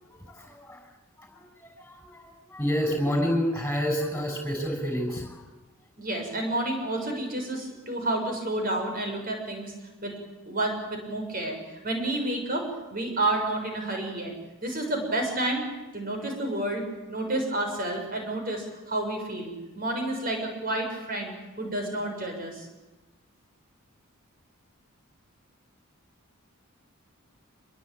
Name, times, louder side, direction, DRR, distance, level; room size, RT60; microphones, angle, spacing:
voice 1, 0.1-0.8 1.2-5.4, equal, 5° left, 3 dB, 6.6 m, -29 dB
voice 2, 6.0-10.2 10.4-12.6 12.9-14.3 14.6-15.7 15.9-22.7, right 1 dB, 40° right, 3 dB, 6.6 m, -30 dB
25.5 x 22.0 x 9.0 m, 1.1 s
head